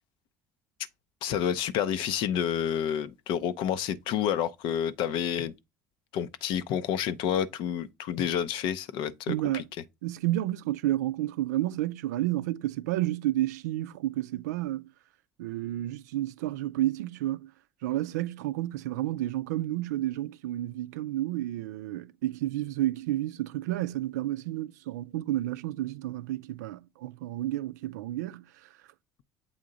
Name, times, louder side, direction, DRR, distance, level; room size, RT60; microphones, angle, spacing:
voice 1, 1.2-5.5 6.1-9.6, left 9 dB, 65° left, 0.6 m, -29 dB
voice 2, 9.3-9.6 10.0-14.9 15.4-17.5 17.8-28.7, right 15 dB, 80° right, 0.4 m, -31 dB
7.6 x 3.6 x 3.8 m
hypercardioid pair, 60°, 9 cm